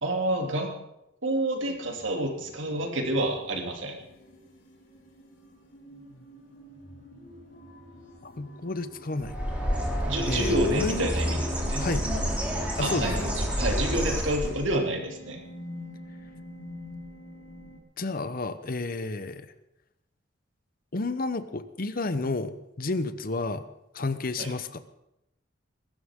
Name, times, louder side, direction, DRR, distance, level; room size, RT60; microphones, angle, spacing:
voice 1, 0.0-0.7 1.2-4.0 10.1-11.9 12.8-15.4 24.4-24.5, right 1 dB, 85° right, 2 dB, 2.9 m, -28 dB
sound 1, 1.5-17.8, left 1 dB, 80° left, 3.8 m, -46 dB
voice 2, 8.2-9.4 10.3-11.2 11.7-12.1 12.8-13.3 18.0-19.5 20.9-23.6 23.9-24.8, left 3 dB, 50° left, 12 dB, 0.9 m, -31 dB
Bird, 9.2-14.8, equal, 5° right, 3.1 m, -29 dB
21.5 x 13.0 x 3.7 m, 0.86 s
head